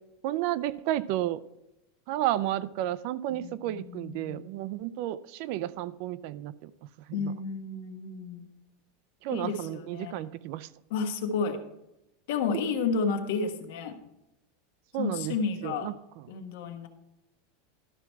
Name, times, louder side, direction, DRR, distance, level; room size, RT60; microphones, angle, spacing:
voice 1, 0.2-1.4 2.1-6.7 9.2-10.7 12.5-12.6 14.9-15.4 15.6-15.9, right 14 dB, 45° right, 17 dB, 0.3 m, -32 dB
voice 2, 3.3-4.5 7.1-8.5 9.3-10.3 10.9-11.6 12.3-14.0 15.0-15.9 16.3-16.9, left 5 dB, 65° left, 6 dB, 1.3 m, -32 dB
12.5 x 5.9 x 4.5 m, 0.88 s
supercardioid pair, 175°, 0 cm